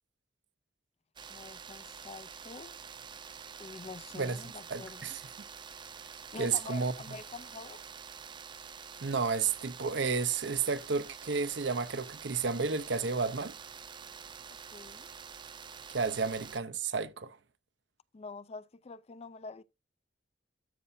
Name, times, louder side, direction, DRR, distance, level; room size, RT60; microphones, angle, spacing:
sound 1, 1.2-16.6, right 6 dB, 25° right, 0.4 m, -47 dB
voice 1, 1.3-2.8 3.6-5.1 6.3-7.8 14.7-15.1 18.1-19.6, left 4 dB, 35° left, 0.4 m, -46 dB
voice 2, 4.7-5.2 6.4-6.9 9.0-13.5 15.9-17.4, right 5 dB, 70° right, 0.7 m, -31 dB
12.5 x 5.5 x 2.6 m
head